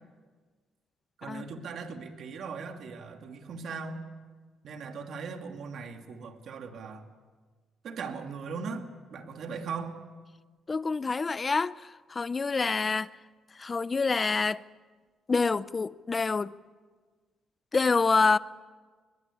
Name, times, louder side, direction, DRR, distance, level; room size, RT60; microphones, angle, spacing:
voice 1, 1.2-4.0 4.6-7.1 7.8-10.0, right 5 dB, 65° right, 2.7 m, -39 dB
voice 2, 10.7-13.1 13.6-14.6 15.3-16.5 17.7-18.4, left 4 dB, 30° left, 0.7 m, -27 dB
22.0 x 22.0 x 8.6 m
cardioid pair, 90°, 0 cm